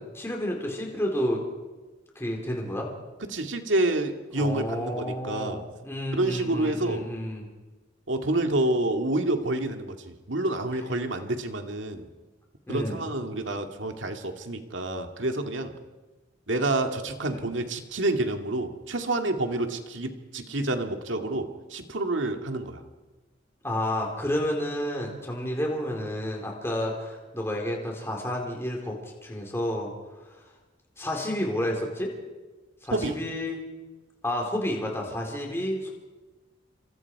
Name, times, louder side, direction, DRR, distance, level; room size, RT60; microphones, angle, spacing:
voice 1, 0.0-1.4 2.2-2.9 4.4-7.5 12.7-13.0 17.3-17.5 23.6-29.9 31.0-32.1 32.8-33.6 34.2-35.9, left 1 dB, 15° left, 0 dB, 4.1 m, -30 dB
voice 2, 3.3-5.7 6.1-7.1 8.1-12.1 12.7-15.7 16.5-22.8 32.9-33.2, right 2 dB, 75° right, 5 dB, 2.2 m, -28 dB
27.5 x 25.5 x 4.8 m, 1.2 s
head